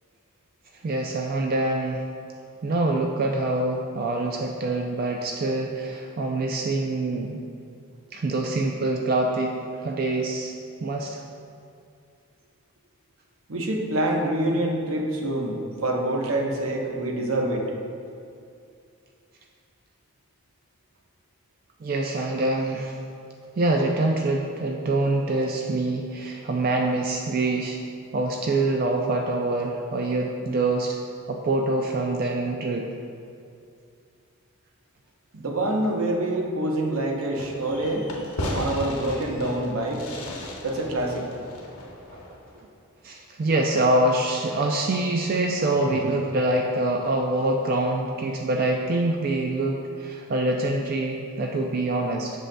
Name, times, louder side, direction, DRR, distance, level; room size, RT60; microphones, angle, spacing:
voice 1, 0.8-2.0 2.6-7.4 8.1-9.6 9.8-10.5 10.8-11.2 21.8-23.0 23.6-27.8 28.1-31.0 31.3-32.9 42.1-42.2 43.0-52.3, right 2 dB, 45° right, 1 dB, 0.3 m, -25 dB
voice 2, 13.5-17.7 35.3-38.1 38.5-40.1 40.6-41.3, right 1 dB, 80° right, 1 dB, 0.8 m, -26 dB
Fireworks, 37.4-42.6, left 1 dB, 85° left, 0.9 m, -35 dB
7.5 x 6.4 x 2.2 m, 2.4 s
head